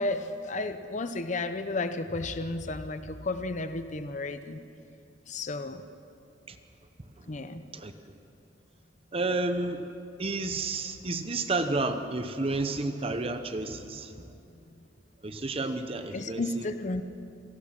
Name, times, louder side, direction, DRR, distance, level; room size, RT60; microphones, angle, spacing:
voice 1, 0.0-4.6 5.3-5.8 7.3-7.6 16.1-17.0, left 2 dB, 40° left, 10 dB, 0.7 m, -33 dB
voice 2, 9.1-9.9 10.2-14.1 15.2-16.7, right 2 dB, 30° right, 8 dB, 0.9 m, -31 dB
27.0 x 18.5 x 6.0 m, 2.7 s
head